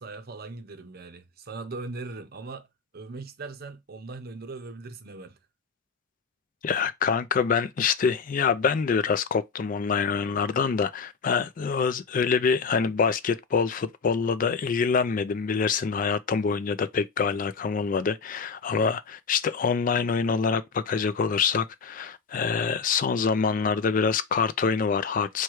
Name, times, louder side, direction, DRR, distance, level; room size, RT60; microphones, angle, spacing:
voice 1, 0.0-2.7 2.9-5.4, right 3 dB, 50° right, 0.6 m, -39 dB
voice 2, 6.6-25.4, left 5 dB, 40° left, 0.3 m, -25 dB
4.6 x 2.3 x 4.6 m
head